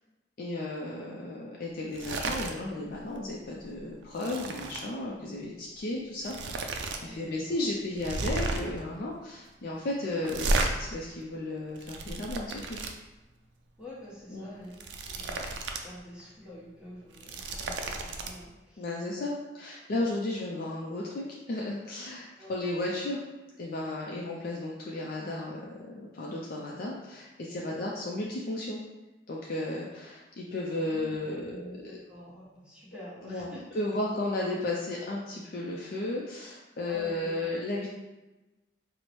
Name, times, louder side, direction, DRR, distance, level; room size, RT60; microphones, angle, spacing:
voice 1, 0.4-12.8 14.3-14.5 18.8-23.2 23.6-28.8 29.3-31.8 33.2-33.5 33.8-37.9, left 2 dB, 55° left, -3 dB, 0.4 m, -34 dB
sound 1, 1.9-2.6 2.9-3.2 3.5-4.9 5.8-5.9 6.2-7.0 7.3-7.4 8.0-8.8 10.2-10.7 11.5-12.9 14.6-15.9 16.2-16.3 17.0-18.3, right 2 dB, 90° right, 0.4 m, -33 dB
voice 2, 7.0-7.7 13.8-19.1 20.0-20.1 22.4-22.5 27.7-27.9 30.8-33.8 36.9-37.7, equal, 5° right, -8 dB, 1.0 m, -48 dB
4.4 x 2.0 x 3.0 m, 1.1 s
head